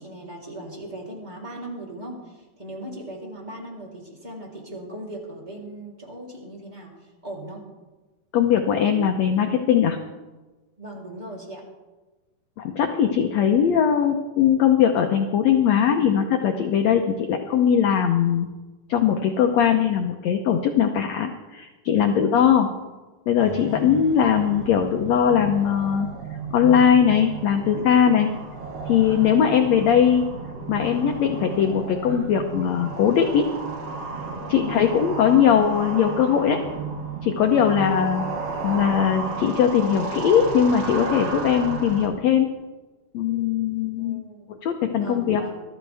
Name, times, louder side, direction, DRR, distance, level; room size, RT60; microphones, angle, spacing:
voice 1, 0.0-7.6 10.8-11.6 22.1-22.4 23.6-23.8 34.5-34.7 44.0-44.5 45.0-45.6, right 1 dB, 10° right, -3 dB, 3.1 m, -38 dB
voice 2, 8.3-10.0 12.6-18.5 18.9-22.7 23.3-26.1 26.5-28.3 28.8-30.3 30.7-33.5 34.5-36.6 37.2-38.2 38.6-42.5 43.1-44.2 44.6-45.4, left 8 dB, 80° left, 4 dB, 1.5 m, -20 dB
sound 1, 23.4-42.1, right 4 dB, 50° right, 2.5 m, -33 dB
22.0 x 13.5 x 3.5 m, 1.2 s
omnidirectional pair, 4.3 m